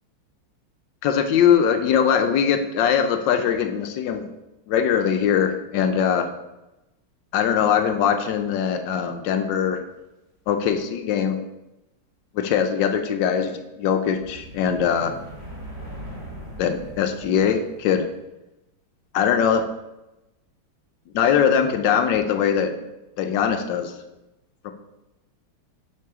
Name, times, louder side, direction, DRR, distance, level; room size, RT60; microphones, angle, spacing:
voice 1, 1.0-4.2 4.7-6.3 7.3-9.8 10.5-11.4 12.3-15.1 16.6-18.1 19.1-19.6 21.1-22.7 23.2-23.9 24.6-24.7, left 8 dB, 75° left, 8 dB, 1.2 m, -21 dB
sound 1, 14.2-18.2, equal, 30° right, 2.9 m, -40 dB
6.6 x 5.9 x 3.6 m, 0.96 s
omnidirectional pair, 2.2 m